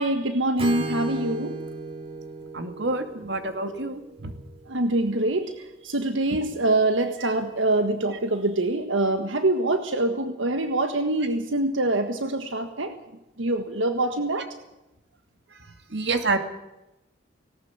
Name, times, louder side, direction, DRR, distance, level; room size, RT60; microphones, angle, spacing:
voice 1, 0.0-1.6 4.7-13.0 13.4-14.5, right 2 dB, 90° right, 7 dB, 1.6 m, -25 dB
Acoustic guitar / Strum, 0.6-4.5, right 2 dB, 30° right, 2.8 m, -34 dB
voice 2, 2.5-4.3 6.3-6.4 7.2-7.3 15.9-16.4, right 3 dB, 65° right, 7 dB, 2.5 m, -28 dB
18.5 x 18.5 x 8.2 m, 0.98 s
head